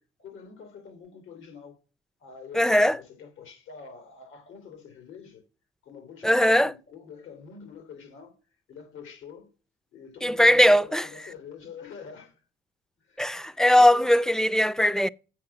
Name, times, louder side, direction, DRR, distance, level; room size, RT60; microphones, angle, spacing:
voice 1, 0.0-1.8 2.2-5.4 5.8-8.4 8.7-9.5 9.9-12.4 13.0-14.1, left 6 dB, 80° left, 3.1 m, -46 dB
voice 2, 2.5-3.0 6.2-6.7 10.2-11.1 13.2-15.1, equal, 5° left, 0.4 m, -20 dB
7.5 x 5.6 x 5.9 m
cardioid pair, 90°, 20 cm